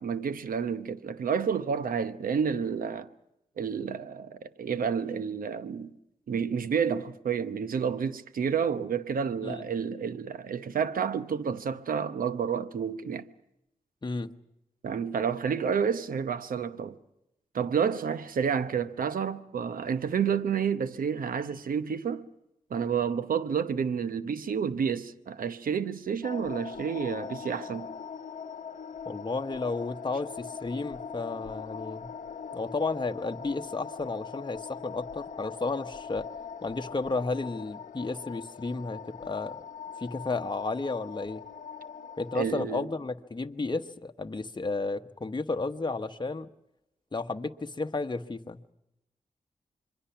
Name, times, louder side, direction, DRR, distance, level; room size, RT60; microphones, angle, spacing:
voice 1, 0.0-3.1 3.6-5.9 6.3-13.3 14.8-17.0 17.5-22.2 22.7-27.9 42.3-42.9, right 7 dB, 75° right, 0.9 m, -30 dB
voice 2, 14.0-14.3 29.1-32.1 32.5-36.3 36.6-39.6 40.0-41.4 42.2-46.5 47.1-48.6, left 3 dB, 30° left, 1.1 m, -33 dB
sound 1, 26.2-42.5, left 6 dB, 60° left, 1.1 m, -41 dB
26.0 x 23.0 x 5.9 m
cardioid pair, 45°, 15 cm